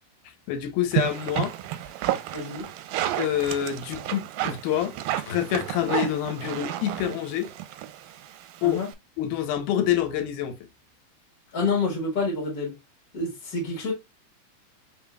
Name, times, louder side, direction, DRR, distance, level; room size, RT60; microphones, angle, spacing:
voice 1, 0.5-1.5 3.2-5.0 5.3-7.5 8.6-8.8 9.2-10.6, left 10 dB, 80° left, 2.1 m, -26 dB
sound 1, 0.9-8.9, right 13 dB, 90° right, 2.2 m, -31 dB
voice 2, 2.3-2.7 8.6-8.9 11.5-12.7 13.1-13.9, left 3 dB, 40° left, 1.4 m, -28 dB
4.6 x 3.9 x 2.3 m
omnidirectional pair, 3.8 m